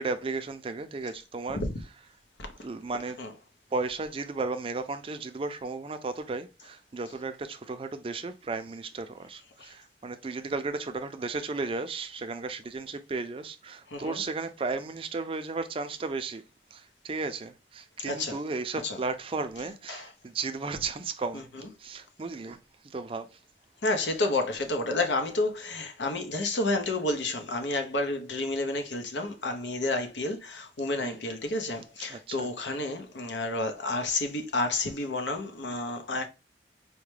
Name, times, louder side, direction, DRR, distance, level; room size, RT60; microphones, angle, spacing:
voice 1, 0.0-2.1 2.6-3.2 3.7-16.4 16.7-21.4 21.8-22.6 22.8-23.4 31.0-31.2 32.1-32.5, right 3 dB, 30° right, 0.4 m, -34 dB
voice 2, 13.9-14.2 18.1-18.4 18.8-19.0 19.9-20.1 21.3-21.4 23.8-36.3, left 2 dB, 90° left, 0.8 m, -30 dB
4.6 x 2.1 x 3.1 m
head